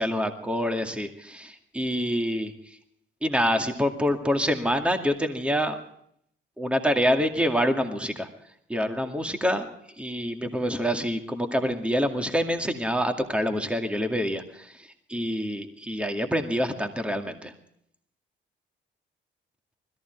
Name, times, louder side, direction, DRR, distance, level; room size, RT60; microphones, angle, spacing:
voice 1, 0.0-2.5 3.2-5.8 6.6-8.3 8.7-9.7 10.0-17.5, equal, 5° right, 6 dB, 2.3 m, -26 dB
20.5 x 14.5 x 4.6 m, 0.69 s
cardioid pair, 90°, 20 cm